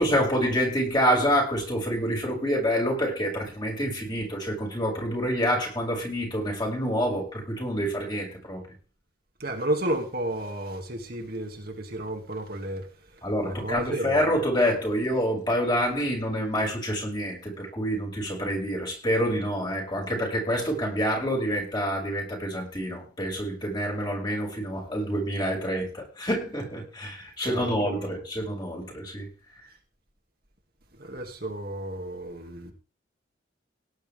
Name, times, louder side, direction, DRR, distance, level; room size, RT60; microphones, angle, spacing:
voice 1, 0.0-8.6 13.2-29.3, equal, 25° left, 6.4 m, -27 dB
voice 2, 9.4-14.3 27.4-28.1 31.0-32.7, right 1 dB, 50° right, 2.5 m, -32 dB
18.0 x 10.5 x 3.6 m
head